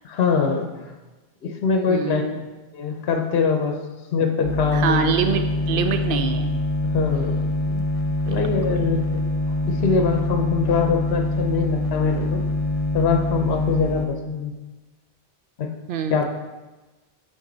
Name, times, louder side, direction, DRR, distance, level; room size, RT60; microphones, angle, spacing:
voice 1, 0.0-0.9 1.4-2.3 2.7-3.8 4.1-5.1 6.8-7.8 8.3-9.2 9.6-12.4 12.9-14.5 15.6-15.7 16.1-16.2, left 5 dB, 75° left, 4 dB, 1.0 m, -23 dB
voice 2, 1.9-2.4 4.7-6.6 8.3-8.9 15.9-16.2, right 6 dB, 65° right, 8 dB, 0.7 m, -25 dB
sound 1, 4.4-14.1, left 2 dB, 40° left, 0.6 m, -24 dB
8.4 x 3.7 x 3.9 m, 1.2 s
omnidirectional pair, 1.1 m